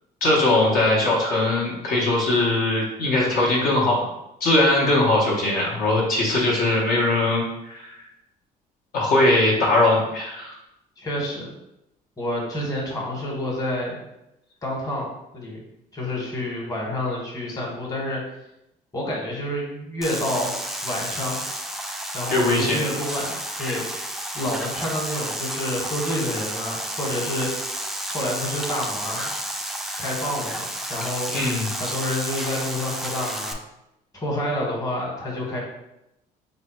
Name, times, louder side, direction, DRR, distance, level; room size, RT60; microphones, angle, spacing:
voice 1, 0.2-4.0 4.4-7.9 8.9-10.6 22.3-22.8 31.3-31.7, left 2 dB, 60° left, -4 dB, 0.9 m, -20 dB
voice 2, 11.0-11.5 12.2-14.0 14.6-15.6 15.9-18.2 18.9-20.5 20.8-21.4 22.1-24.0 24.3-27.5 28.1-29.3 30.0-31.3 31.7-33.6 34.1-35.6, left 1 dB, 20° left, -2 dB, 1.2 m, -28 dB
sound 1, 20.0-33.5, right 1 dB, ahead, 0.3 m, -31 dB
3.4 x 2.2 x 4.2 m, 0.86 s
cardioid pair, 110°, 17 cm